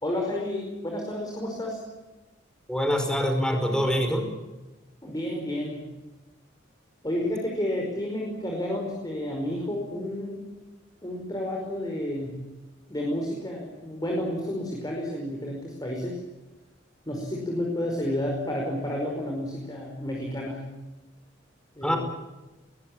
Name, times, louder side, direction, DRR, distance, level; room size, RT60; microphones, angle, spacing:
voice 1, 0.0-1.8 5.0-5.9 7.0-10.4 11.0-12.4 12.9-16.2 17.1-20.7 21.8-22.0, left 1 dB, 20° left, 0 dB, 5.2 m, -31 dB
voice 2, 2.7-4.3 21.8-22.0, equal, 5° left, 5 dB, 4.7 m, -25 dB
22.0 x 20.5 x 8.8 m, 1.1 s
head